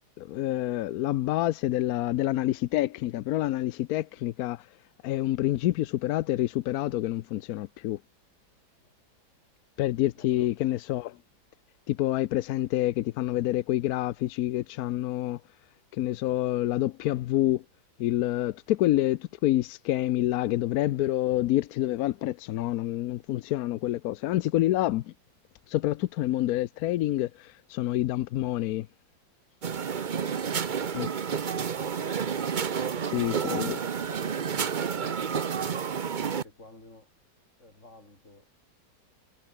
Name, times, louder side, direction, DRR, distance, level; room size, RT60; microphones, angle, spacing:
voice 1, 0.2-4.6 5.0-8.0 9.8-11.1 11.9-15.4 15.9-17.6 18.0-25.0 25.7-28.9 30.9-31.1 33.1-33.8, left 15 dB, 75° left, 0.8 m, -27 dB
voice 2, 10.2-10.6 32.9-37.1 37.6-38.5, left 2 dB, 35° left, 5.6 m, -52 dB
sound 1, 29.6-36.4, right 7 dB, 80° right, 0.4 m, -30 dB
omnidirectional pair, 2.1 m